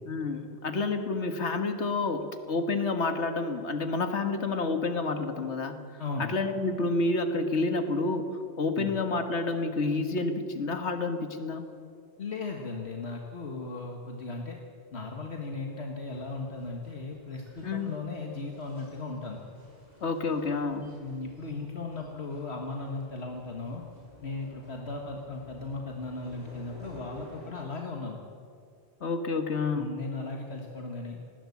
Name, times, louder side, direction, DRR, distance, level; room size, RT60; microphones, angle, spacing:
voice 1, 0.1-5.8 6.2-11.6 17.6-18.0 20.0-20.9 29.0-29.8, left 3 dB, 85° left, 7 dB, 1.9 m, -29 dB
voice 2, 6.0-6.3 8.8-8.9 12.2-14.6 14.9-19.4 21.0-23.8 24.2-28.2 29.7-31.2, left 3 dB, 70° left, 1 dB, 1.9 m, -37 dB
sound 1, 16.1-27.5, equal, 40° right, 5.9 m, -53 dB
19.5 x 16.0 x 8.6 m, 2.3 s
omnidirectional pair, 1.1 m